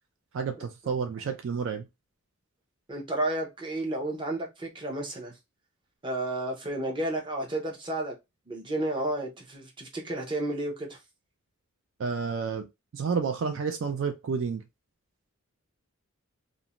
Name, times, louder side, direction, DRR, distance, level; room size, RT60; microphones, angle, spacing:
voice 1, 0.3-1.8 12.0-12.7 12.9-14.6, right 5 dB, 60° right, 0.4 m, -30 dB
voice 2, 2.9-5.3 6.0-8.1 8.5-11.0, right 1 dB, 20° right, 0.7 m, -32 dB
2.5 x 2.1 x 2.9 m
head